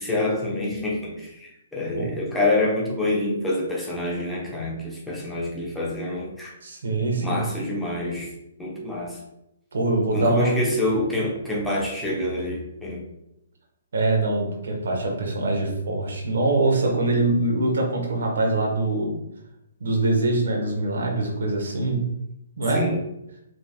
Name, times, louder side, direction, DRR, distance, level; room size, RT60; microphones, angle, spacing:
voice 1, 0.0-6.5 7.2-8.3 8.6-9.2 10.1-13.0 22.7-23.0, left 2 dB, 5° left, -4 dB, 1.0 m, -27 dB
voice 2, 6.6-7.4 9.7-10.5 13.9-19.1 19.8-22.0 22.6-22.8, right 2 dB, 65° right, 0 dB, 1.3 m, -23 dB
5.3 x 3.4 x 2.4 m, 0.84 s
figure-of-eight pair, 130°, 0 cm